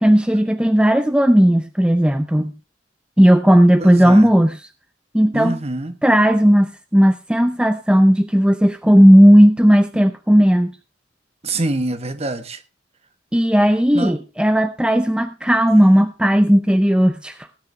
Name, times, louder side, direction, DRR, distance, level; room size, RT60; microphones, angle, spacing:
voice 1, 0.0-2.5 3.2-4.6 5.1-5.6 6.0-10.7 13.3-17.4, equal, 5° right, 10 dB, 0.6 m, -14 dB
voice 2, 3.8-4.3 5.3-6.0 11.4-12.6 13.9-14.2, right 2 dB, 35° right, 11 dB, 1.2 m, -25 dB
17.0 x 9.7 x 3.3 m, 0.28 s
head